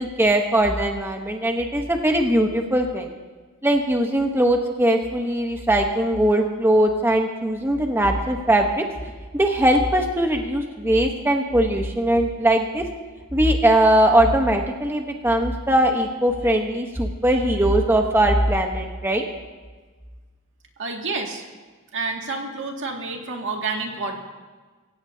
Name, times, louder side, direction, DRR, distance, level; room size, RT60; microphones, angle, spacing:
voice 1, 0.0-3.1 3.6-8.9 9.3-12.9 13.3-19.2, right 1 dB, 10° right, 3 dB, 1.0 m, -20 dB
voice 2, 20.8-21.4 21.9-24.2, right 3 dB, 60° right, 1 dB, 2.2 m, -29 dB
26.5 x 15.5 x 2.8 m, 1.4 s
head